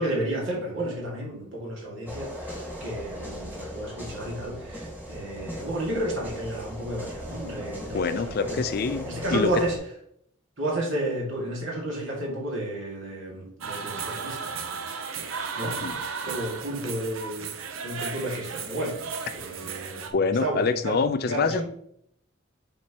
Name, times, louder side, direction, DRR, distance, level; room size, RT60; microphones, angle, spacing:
voice 1, 0.0-8.6 9.0-9.7 10.6-14.8 15.2-19.0 19.3-20.0 20.4-21.0 21.3-21.6, right 1 dB, 70° right, -3 dB, 2.1 m, -32 dB
sound 1, 2.1-9.8, equal, 10° right, 1.6 m, -38 dB
voice 2, 7.9-9.6 15.8-15.9 20.1-21.6, left 4 dB, 50° left, 12 dB, 0.4 m, -25 dB
sound 2, 13.6-20.1, right 6 dB, 85° right, 0.7 m, -35 dB
7.5 x 4.4 x 2.9 m, 0.69 s
head